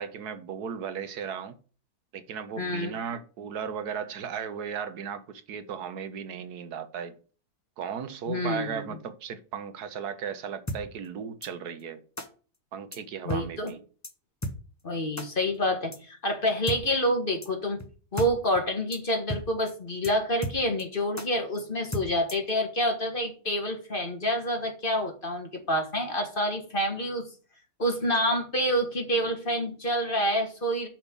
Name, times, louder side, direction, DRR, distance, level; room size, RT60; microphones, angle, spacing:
voice 1, 0.0-1.6 2.1-7.2 7.8-12.0 12.7-13.8, right 7 dB, 75° right, 1.4 m, -36 dB
voice 2, 2.6-2.9 8.3-8.8 13.3-13.7 14.8-17.8 18.1-27.3 27.8-30.9, equal, 35° left, 1.9 m, -28 dB
sound 1, 10.7-10.8 11.4-11.5 12.2-12.3 12.9-13.0 13.3-13.4 13.7-13.8 14.0-14.1 14.4-14.6 15.2-15.3 15.9-16.0 16.7-16.8 17.4-17.5 17.8-17.9 18.2-18.3 18.6-18.7 18.9-19.0 19.3-19.4 19.7-19.8 20.0-20.1 20.4-20.8 21.2-21.3 21.9-22.5, equal, 15° left, 0.7 m, -33 dB
6.0 x 5.6 x 6.8 m
omnidirectional pair, 1.7 m